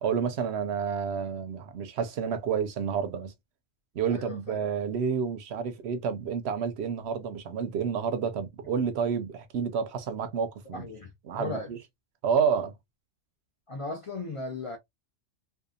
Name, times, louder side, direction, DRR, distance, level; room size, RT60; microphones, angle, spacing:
voice 1, 0.0-3.3 4.0-10.9 11.3-11.8 12.2-12.7, right 6 dB, 65° right, 0.8 m, -29 dB
voice 2, 4.1-4.6 10.7-11.1 11.4-11.7 13.7-14.8, left 3 dB, 55° left, 0.3 m, -36 dB
2.7 x 2.2 x 2.3 m
omnidirectional pair, 1.2 m